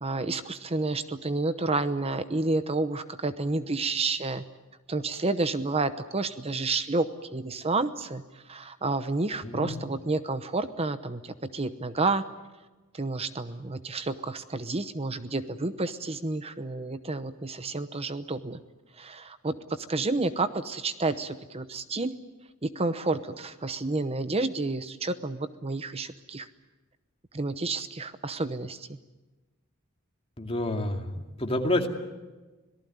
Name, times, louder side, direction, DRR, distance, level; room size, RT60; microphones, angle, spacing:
voice 1, 0.0-4.4 4.9-12.2 12.9-18.6 19.0-22.1 22.6-26.5 27.3-28.9, right 3 dB, 30° right, 12 dB, 0.8 m, -30 dB
voice 2, 9.5-9.8 30.4-31.0 31.4-31.9, left 1 dB, 25° left, 3 dB, 2.4 m, -28 dB
26.0 x 18.5 x 9.4 m, 1.2 s
head